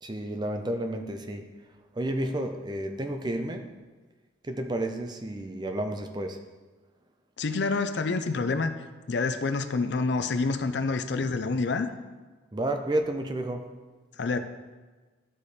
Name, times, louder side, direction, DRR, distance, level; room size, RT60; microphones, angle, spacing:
voice 1, 0.0-1.5 2.0-3.7 4.5-6.4 12.5-13.7, right 1 dB, 20° right, 6 dB, 0.5 m, -31 dB
voice 2, 7.4-8.7 9.1-11.9 14.2-14.4, left 3 dB, 60° left, 9 dB, 0.5 m, -27 dB
12.0 x 4.2 x 3.3 m, 1.3 s
head